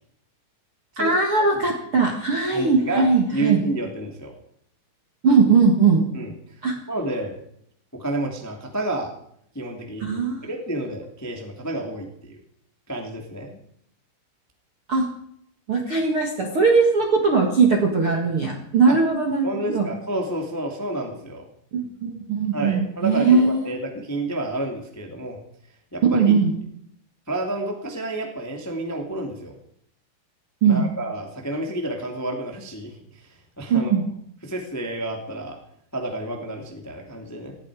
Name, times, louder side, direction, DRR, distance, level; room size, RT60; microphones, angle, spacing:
voice 1, 1.0-3.6 5.2-6.0 6.6-6.7 10.0-10.4 14.9-15.1 15.7-19.9 21.7-23.6 26.1-26.5 30.6-30.9 33.7-34.0, right 4 dB, 60° right, 0 dB, 1.4 m, -19 dB
voice 2, 2.5-4.3 6.1-6.6 6.9-7.4 7.9-9.1 9.5-12.4 12.9-13.6 18.9-19.0 19.4-21.4 22.5-25.4 25.9-26.2 27.3-29.5 30.6-33.9 34.4-35.6 35.9-37.6, right 1 dB, 20° left, 2 dB, 0.4 m, -30 dB
18.5 x 15.5 x 4.9 m, 0.68 s
omnidirectional pair, 5.6 m